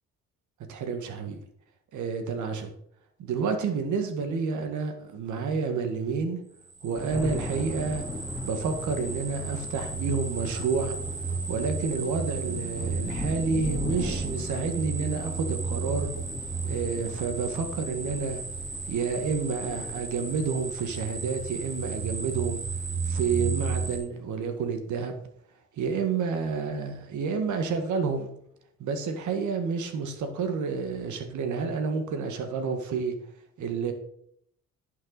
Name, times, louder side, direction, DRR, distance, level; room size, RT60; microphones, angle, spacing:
voice 1, 0.7-1.4 1.9-2.7 3.2-6.4 6.8-8.1 8.4-11.0 11.5-16.1 16.6-18.4 18.9-22.6 23.0-25.2 25.7-28.3 28.8-33.2 33.6-33.9, right 5 dB, 75° right, 6 dB, 1.8 m, -29 dB
sound 1, 6.6-24.0, right 4 dB, 90° right, 3.6 m, -34 dB
sound 2, 6.9-23.7, left 2 dB, 5° right, 2.7 m, -40 dB
11.0 x 6.7 x 4.1 m, 0.70 s
cardioid pair, 90°, 30 cm